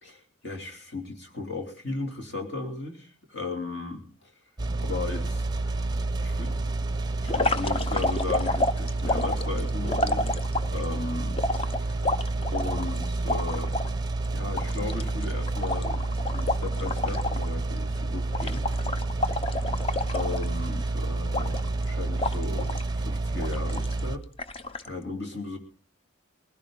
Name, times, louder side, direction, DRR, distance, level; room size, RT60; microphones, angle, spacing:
voice 1, 0.0-4.3 4.8-5.4 6.2-6.6 7.2-11.4 11.7-12.0 12.5-13.7 14.3-18.7 20.0-24.2 24.8-25.6, left 3 dB, 55° left, 3 dB, 3.2 m, -36 dB
sound 1, 4.6-24.2, right 2 dB, 20° right, 0.7 m, -29 dB
sound 2, 7.3-10.8 11.4-13.9 14.2-14.3 14.6-17.5 17.8-18.0 18.3-20.8 21.3-21.8 22.2-22.9 23.4-24.0 24.4-24.9, left 2 dB, 25° left, 0.7 m, -29 dB
20.5 x 15.5 x 3.8 m, 0.40 s
head